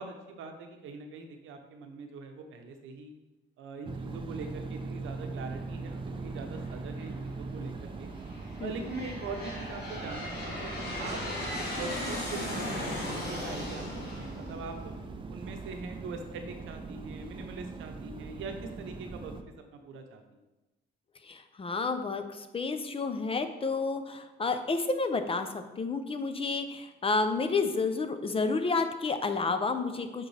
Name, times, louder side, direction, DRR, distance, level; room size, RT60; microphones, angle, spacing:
voice 1, 0.0-3.1 3.6-8.1 8.6-14.9 15.3-19.3 19.7-20.4, right 4 dB, 80° right, 5 dB, 0.8 m, -42 dB
sound 1, 3.8-19.4, right 3 dB, 25° right, 0.5 m, -41 dB
Aircraft, 6.6-7.1 7.9-15.4, left 1 dB, 55° left, 1.7 m, -38 dB
voice 2, 21.2-30.3, left 4 dB, 30° left, 9 dB, 0.5 m, -30 dB
7.9 x 3.7 x 3.3 m, 1.1 s
cardioid pair, 90°, 20 cm